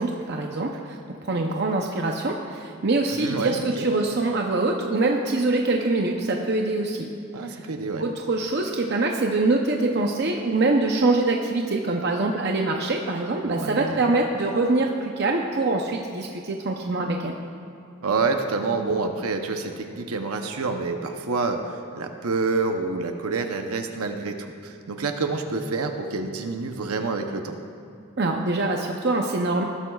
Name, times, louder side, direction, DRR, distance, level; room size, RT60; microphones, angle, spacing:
voice 1, 0.0-7.1 7.5-7.6 8.0-17.3 28.2-29.6, right 2 dB, 50° right, 1 dB, 0.6 m, -24 dB
voice 2, 3.2-3.9 7.3-8.0 13.4-14.1 18.0-27.6, right 4 dB, 90° right, 5 dB, 0.8 m, -28 dB
19.0 x 12.5 x 2.4 m, 2.6 s
head